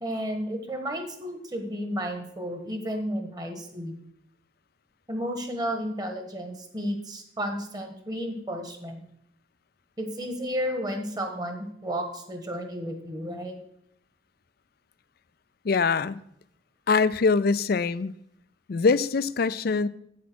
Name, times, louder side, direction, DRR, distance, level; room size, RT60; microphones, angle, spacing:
voice 1, 0.0-3.9 5.1-9.0 10.0-13.6, equal, 20° right, 1.4 m, -32 dB
voice 2, 15.6-16.2 16.9-18.1 18.7-19.9, left 4 dB, 50° left, 0.4 m, -23 dB
8.7 x 8.3 x 6.2 m
head